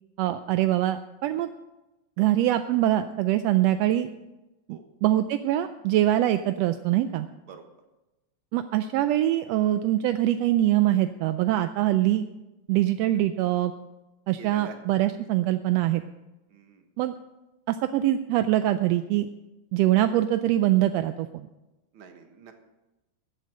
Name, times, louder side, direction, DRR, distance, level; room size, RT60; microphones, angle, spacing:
voice 1, 0.2-1.5 2.2-4.1 4.7-7.3 8.5-12.2 12.7-13.7 14.3-16.0 17.0-17.1 17.7-19.3 19.7-21.5, right 13 dB, 80° right, 10 dB, 1.5 m, -23 dB
voice 2, 14.4-14.8 16.5-16.8 21.9-22.5, right 6 dB, 50° right, 5 dB, 1.9 m, -45 dB
14.5 x 8.2 x 6.4 m, 1.0 s
omnidirectional pair, 3.3 m